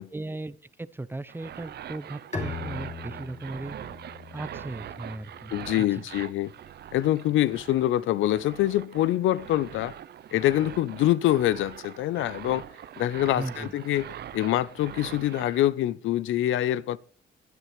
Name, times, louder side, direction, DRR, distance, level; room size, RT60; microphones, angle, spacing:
voice 1, 0.0-3.8 4.3-5.5 5.8-6.0 13.3-13.7, right 2 dB, 10° right, 0.6 m, -37 dB
sound 1, 1.3-15.7, right 10 dB, 55° right, 0.6 m, -42 dB
Bowed string instrument, 2.3-5.8, left 4 dB, 35° left, 3.1 m, -39 dB
voice 2, 5.5-6.5 6.9-9.9 10.3-12.7 13.0-17.0, left 13 dB, 80° left, 0.6 m, -25 dB
21.0 x 9.4 x 3.2 m
cardioid pair, 90°, 20 cm